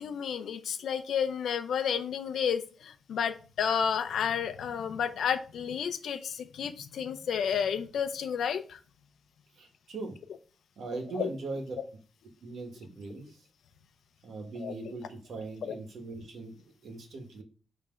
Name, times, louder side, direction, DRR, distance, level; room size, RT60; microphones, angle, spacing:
voice 1, 0.0-8.8 11.1-11.3 14.6-14.7 15.6-15.7, left 7 dB, 70° left, 9 dB, 0.6 m, -31 dB
voice 2, 9.6-10.1 10.8-11.6 12.4-13.4 14.2-17.4, right 3 dB, 60° right, 3 dB, 1.5 m, -40 dB
5.8 x 3.2 x 5.1 m, 0.37 s
wide cardioid pair, 165°, 0 cm